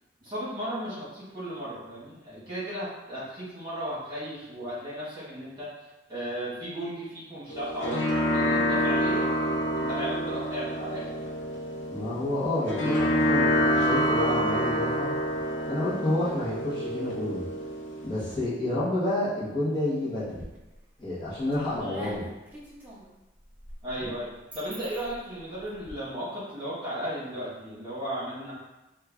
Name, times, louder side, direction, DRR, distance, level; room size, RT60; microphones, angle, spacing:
voice 1, 0.2-5.7 6.1-9.3 9.8-11.3 21.8-22.1 23.8-24.3 24.5-28.6, right 1 dB, 25° right, -10 dB, 1.4 m, -35 dB
sound 1, 7.5-18.4, equal, 85° left, 0.5 m, -27 dB
voice 2, 11.9-15.1 15.7-17.4 18.0-20.4 21.0-22.2 24.0-24.1, left 1 dB, 25° left, -11 dB, 1.0 m, -29 dB
sound 2, 20.3-20.9 21.3-25.9, right 1 dB, 10° right, 0.6 m, -46 dB
3.2 x 2.3 x 3.4 m, 0.98 s
head